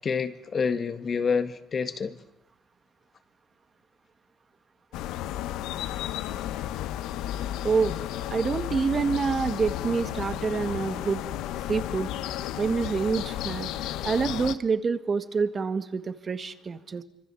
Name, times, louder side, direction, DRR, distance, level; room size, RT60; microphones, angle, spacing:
voice 1, 0.0-2.2, left 5 dB, 40° left, 1.9 m, -28 dB
sound 1, 4.9-14.6, left 12 dB, 90° left, 0.9 m, -33 dB
voice 2, 8.3-11.2 11.7-12.1 12.6-13.7 14.0-17.0, right 5 dB, 35° right, 1.7 m, -27 dB
28.0 x 25.0 x 7.1 m
cardioid pair, 110°, 0 cm